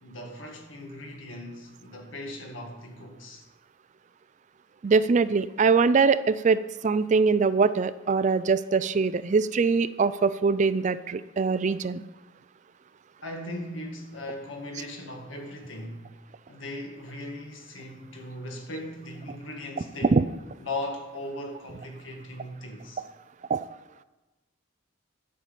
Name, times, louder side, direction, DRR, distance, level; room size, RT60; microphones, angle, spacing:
voice 1, 0.0-3.4 13.2-16.1 16.5-20.2 20.6-23.0, left 1 dB, 80° left, 1.8 m, -38 dB
voice 2, 4.8-12.0 20.1-20.2 23.5-23.6, right 4 dB, 40° right, 0.4 m, -23 dB
11.0 x 5.7 x 6.9 m
head